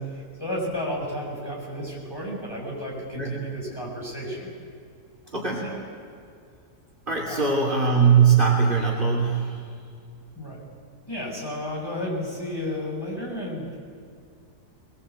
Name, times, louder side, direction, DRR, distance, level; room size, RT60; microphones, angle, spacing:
voice 1, 0.0-4.5 5.6-5.8 7.3-7.6 10.4-10.6 11.1-13.6, equal, 15° left, -4 dB, 6.7 m, -32 dB
voice 2, 5.3-5.7 7.1-9.6, right 6 dB, 30° right, -1 dB, 3.3 m, -21 dB
22.5 x 21.5 x 8.3 m, 2.3 s
omnidirectional pair, 1.7 m